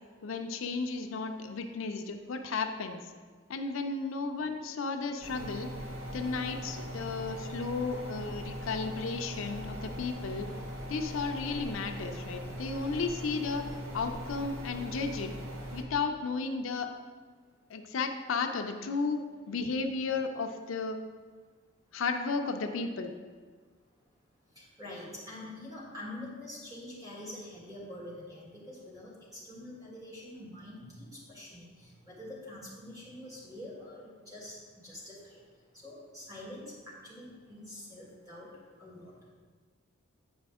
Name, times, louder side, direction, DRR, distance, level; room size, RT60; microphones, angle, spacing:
voice 1, 0.2-3.1 3.5-5.7 6.1-10.5 10.9-13.7 13.9-15.3 15.7-16.9 17.7-21.0 21.9-23.2, left 4 dB, 70° left, 5 dB, 0.5 m, -34 dB
sound 1, 5.2-15.8, equal, 80° right, 0.9 m, -40 dB
voice 2, 24.5-34.6 34.8-35.4 35.7-38.5 38.8-39.1, left 1 dB, 15° right, -6 dB, 1.8 m, -45 dB
8.8 x 4.9 x 3.5 m, 1.5 s
head